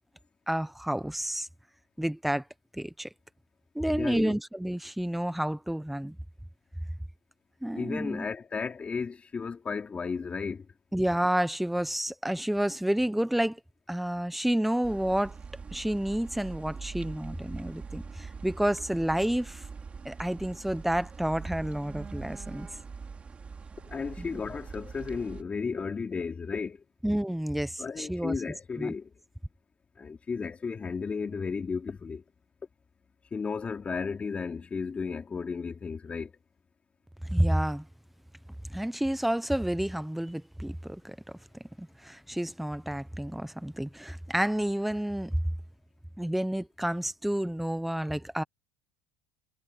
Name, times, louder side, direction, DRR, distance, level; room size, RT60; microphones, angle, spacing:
voice 1, 0.5-1.5 2.0-2.4 2.7-3.1 3.7-6.2 7.6-8.3 10.9-13.6 13.9-15.3 15.7-19.6 20.0-22.7 24.2-24.3 27.0-28.4 28.8-28.9 37.2-37.8 38.7-41.2 41.8-45.4 46.2-48.4, right 1 dB, ahead, 0.9 m, -30 dB
voice 2, 3.9-4.4 7.7-10.7 23.8-26.8 27.8-29.1 30.0-32.2 33.3-36.3, left 5 dB, 20° left, 3.1 m, -34 dB
sound 1, 14.8-25.4, right 5 dB, 20° right, 2.7 m, -43 dB
supercardioid pair, 125°, 6 cm